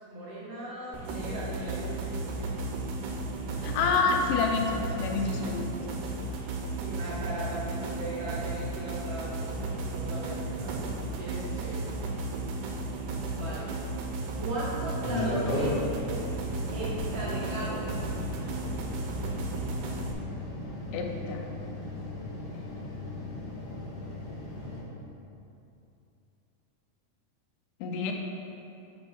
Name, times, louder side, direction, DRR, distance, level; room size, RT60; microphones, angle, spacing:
voice 1, 0.1-2.7 3.8-4.3 5.1-5.4 6.8-9.6 9.8-10.8 11.2-11.9 13.3-13.7 14.4-16.2 16.7-17.9, right 1 dB, 65° right, -8 dB, 1.6 m, -38 dB
sound 1, 0.9-20.1, right 2 dB, 85° right, 2.2 m, -34 dB
voice 2, 3.6-5.6 20.9-21.4 27.8-28.1, left 4 dB, 90° left, 3 dB, 2.3 m, -28 dB
sound 2, 15.0-24.8, left 1 dB, 55° left, 2.2 m, -36 dB
5.3 x 4.4 x 6.2 m, 2.8 s
omnidirectional pair, 3.7 m